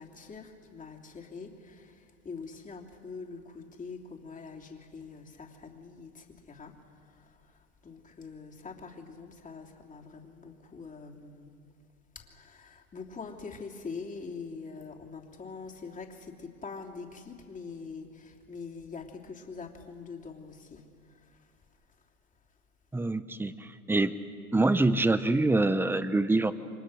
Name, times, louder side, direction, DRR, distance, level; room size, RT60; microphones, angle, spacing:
voice 1, 0.0-11.6 12.1-21.5, left 4 dB, 15° left, 0 dB, 3.0 m, -44 dB
voice 2, 22.9-24.1 24.5-26.5, right 2 dB, 5° right, 13 dB, 0.8 m, -25 dB
29.5 x 25.0 x 6.4 m, 2.3 s
hypercardioid pair, 105°, 44 cm